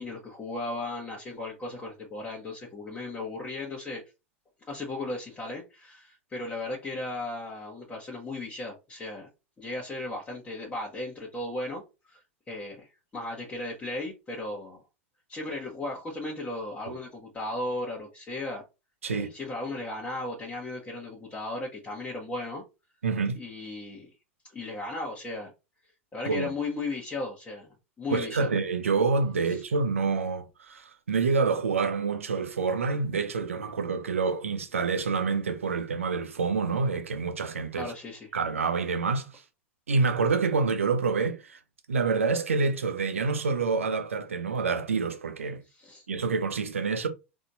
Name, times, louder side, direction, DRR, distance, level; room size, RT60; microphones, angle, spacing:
voice 1, 0.0-4.0 4.7-9.3 9.6-14.8 15.3-18.6 19.1-22.6 23.4-24.1 24.5-25.5 26.1-28.5 29.5-29.6 37.7-38.3 45.7-46.0, left 2 dB, 20° left, 1.2 m, -36 dB
voice 2, 23.0-23.4 26.2-26.5 28.1-37.9 38.3-39.4 39.9-41.6 41.9-45.6 46.1-47.1, right 4 dB, 75° right, 0.7 m, -27 dB
4.1 x 2.8 x 2.6 m
figure-of-eight pair, 85°, 7 cm